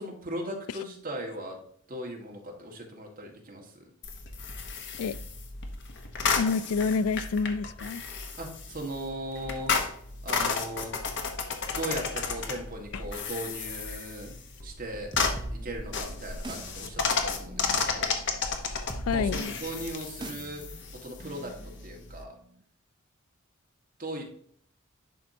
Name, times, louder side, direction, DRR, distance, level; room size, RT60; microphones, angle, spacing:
voice 1, 0.0-1.6 1.9-3.8 8.4-9.7 10.2-10.9 11.7-14.4 14.6-15.1 15.5-18.2 19.1-22.4 24.0-24.2, right 1 dB, 40° right, 0 dB, 1.6 m, -38 dB
sound 1, 4.0-22.2, left 5 dB, 55° left, 0.9 m, -33 dB
voice 2, 6.3-8.0 12.9-13.0 18.9-19.5, left 5 dB, 80° left, 18 dB, 0.3 m, -28 dB
sound 2, 15.1-22.5, right 1 dB, 20° right, 0.6 m, -42 dB
11.0 x 4.4 x 2.7 m, 0.63 s
head